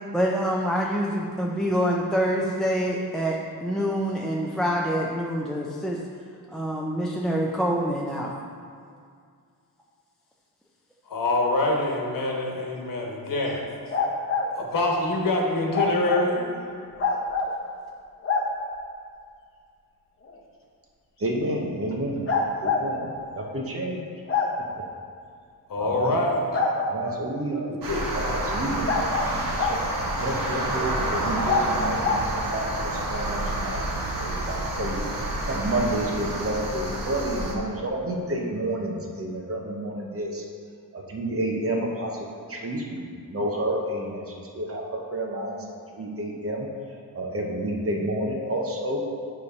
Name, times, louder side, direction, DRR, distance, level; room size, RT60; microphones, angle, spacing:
voice 1, 0.1-6.0 6.5-8.3, equal, ahead, -3 dB, 0.4 m, -26 dB
voice 2, 11.1-13.6 14.6-16.5 25.7-26.6 27.7-28.0, left 2 dB, 60° left, -1 dB, 1.2 m, -25 dB
sound 1, 13.9-14.5 15.7-16.3 17.0-17.5 18.2-18.5 20.2-20.3 22.3-22.8 24.3-24.5 26.5-27.2 28.8-29.8 31.4-31.6 32.0-32.3, left 4 dB, 35° left, 0.8 m, -25 dB
voice 3, 21.2-22.3 22.6-23.1 23.3-24.1 25.8-26.1 26.9-27.7 28.3-29.4 30.2-33.8 34.2-35.0 35.5-40.4 40.9-42.1 42.5-44.2 44.5-44.8 45.1-45.6 46.0-46.7 47.1-49.0, right 1 dB, 40° right, -1 dB, 0.9 m, -29 dB
sound 2, 27.8-37.5, right 1 dB, 65° right, 1.4 m, -29 dB
9.3 x 3.3 x 5.3 m, 2.2 s
wide cardioid pair, 160°, 37 cm